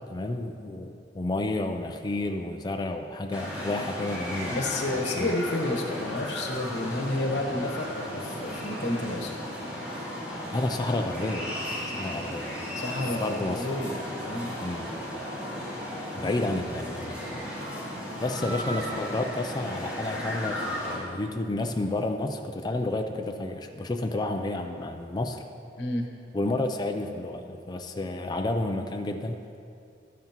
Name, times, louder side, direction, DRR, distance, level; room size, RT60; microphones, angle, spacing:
voice 1, 0.1-4.6 5.2-5.3 10.5-11.6 11.9-12.5 13.2-13.7 14.6-14.9 16.1-17.2 18.2-25.4 26.3-29.4, left 2 dB, 25° left, 4 dB, 0.4 m, -30 dB
sound 1, 3.3-21.0, equal, 10° right, 2.6 m, -35 dB
voice 2, 4.5-9.3 12.8-14.6 25.8-26.1, left 2 dB, 85° left, 2 dB, 1.1 m, -30 dB
12.0 x 9.3 x 2.9 m, 2.5 s
head